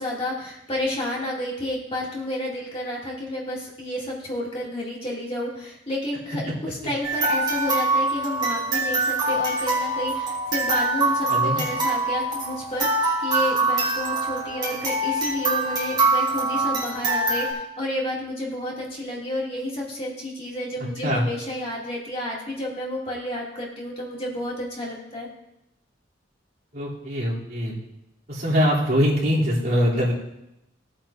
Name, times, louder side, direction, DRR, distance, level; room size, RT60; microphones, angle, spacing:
voice 1, 0.0-25.3, left 1 dB, 30° left, -4 dB, 2.3 m, -30 dB
sound 1, 7.0-17.5, right 2 dB, 25° right, 3.9 m, -24 dB
voice 2, 11.3-11.6 21.0-21.2 26.7-27.7 28.3-30.1, equal, 55° right, -7 dB, 2.9 m, -22 dB
18.0 x 8.6 x 2.5 m, 0.87 s
head